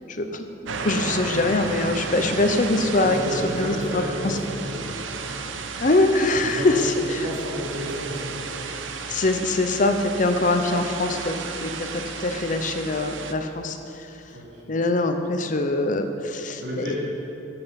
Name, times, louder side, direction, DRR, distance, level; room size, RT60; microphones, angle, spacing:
voice 1, 0.1-4.4 5.8-7.3 9.1-11.3 11.6-13.8 14.1-14.2 14.7-16.9, left 2 dB, 45° left, 6 dB, 0.7 m, -23 dB
sound 1, 0.7-13.3, right 4 dB, 85° right, 0.8 m, -33 dB
voice 2, 3.0-4.9 6.4-6.7 7.2-8.6 14.3-14.6 16.6-17.0, equal, 70° right, -4 dB, 3.1 m, -32 dB
13.0 x 7.7 x 5.9 m, 2.8 s
head